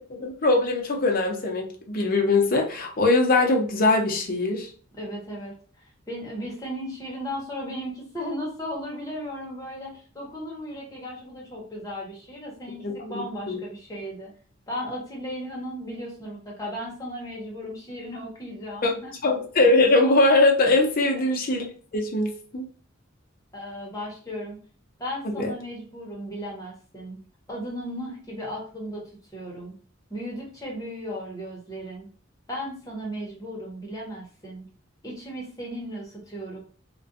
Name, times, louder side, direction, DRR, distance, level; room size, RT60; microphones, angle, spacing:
voice 1, 0.0-4.7 12.8-13.6 18.8-18.9 19.2-21.6 21.9-22.7 25.3-25.5, left 2 dB, 45° left, 1 dB, 0.6 m, -22 dB
voice 2, 4.9-14.3 14.7-19.3 21.1-21.3 23.5-24.6 25.0-27.2 27.5-29.0 29.3-29.7 30.1-32.1 32.5-34.6 35.0-36.6, equal, 15° left, -3 dB, 0.8 m, -36 dB
2.5 x 2.2 x 2.5 m, 0.41 s
head